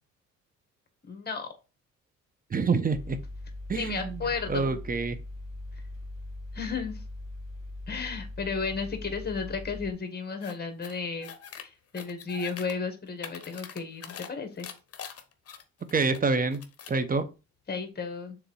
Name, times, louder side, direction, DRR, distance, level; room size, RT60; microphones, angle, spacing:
voice 1, 1.0-1.5 3.7-4.8 6.5-7.0 7.9-11.3 11.6-14.7 17.7-18.4, left 5 dB, 30° left, 6 dB, 2.0 m, -33 dB
voice 2, 2.5-3.2 3.7-4.2 4.5-5.2 15.9-16.6 16.9-17.3, right 4 dB, 30° right, 12 dB, 1.0 m, -26 dB
Mechanical fan, 2.9-9.9, left 2 dB, 10° left, 3.0 m, -40 dB
sound 1, 10.4-10.5 10.8-11.6 11.9-12.7 13.1-14.3 14.6-16.2 16.5-17.0, left 7 dB, 50° left, 1.1 m, -43 dB
6.6 x 3.7 x 4.8 m, 0.30 s
cardioid pair, 90°, 30 cm